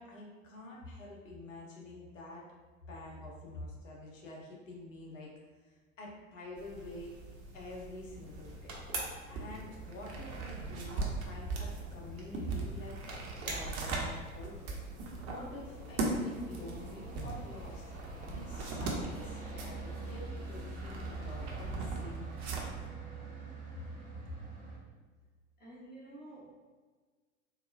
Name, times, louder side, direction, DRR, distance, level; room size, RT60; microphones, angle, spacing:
voice 1, 0.0-2.5 2.9-5.3 5.6-7.1 7.5-8.8 9.3-13.0 13.4-14.7 15.3-17.8 18.3-22.8, left 2 dB, 65° left, -3 dB, 1.1 m, -47 dB
sound 1, 6.6-22.9, right 3 dB, 55° right, 0.8 m, -40 dB
sound 2, 6.6-18.5, right 2 dB, 85° right, 0.9 m, -49 dB
sound 3, 8.0-24.8, right 3 dB, 20° right, 0.8 m, -47 dB
voice 2, 25.6-26.5, right 1 dB, 25° left, -7 dB, 1.4 m, -50 dB
4.1 x 2.3 x 2.5 m, 1.4 s
figure-of-eight pair, 85°, 40 cm